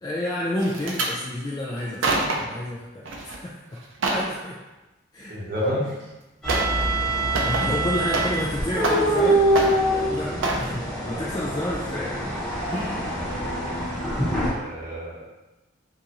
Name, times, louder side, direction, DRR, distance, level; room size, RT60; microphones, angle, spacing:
voice 1, 0.0-3.8 4.1-4.6 5.1-5.4 7.4-9.4 10.1-12.2 12.7-13.1, left 1 dB, 20° left, -5 dB, 0.3 m, -30 dB
sound 1, 0.6-1.1 1.8-2.6 3.0-3.4 3.7-4.3 5.7-5.8 6.5-6.8 7.1-8.5 8.8-9.3 9.5-10.0 10.4-10.7 11.2-11.4 11.7-11.8, right 2 dB, 70° right, 0.5 m, -27 dB
voice 2, 5.3-6.1 9.9-10.0 10.6-10.7 14.2-15.2, equal, 45° right, -6 dB, 0.9 m, -30 dB
sound 2, 6.4-14.5, right 1 dB, 5° left, 0.9 m, -25 dB
3.6 x 2.6 x 2.8 m, 1.1 s
head